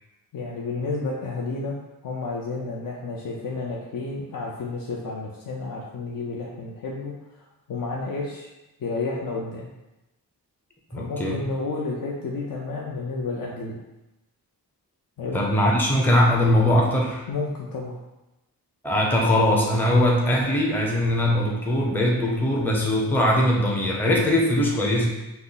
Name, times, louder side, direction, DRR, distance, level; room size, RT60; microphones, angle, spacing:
voice 1, 0.3-1.8 2.0-7.1 7.7-8.5 8.8-9.7 10.9-13.8 15.2-15.4 17.3-18.0, left 3 dB, 65° left, -2 dB, 0.6 m, -31 dB
voice 2, 10.9-11.4 15.3-17.2 18.8-25.1, left 1 dB, 5° left, -2 dB, 0.5 m, -21 dB
5.8 x 2.0 x 3.9 m, 0.99 s
wide cardioid pair, 175°, 37 cm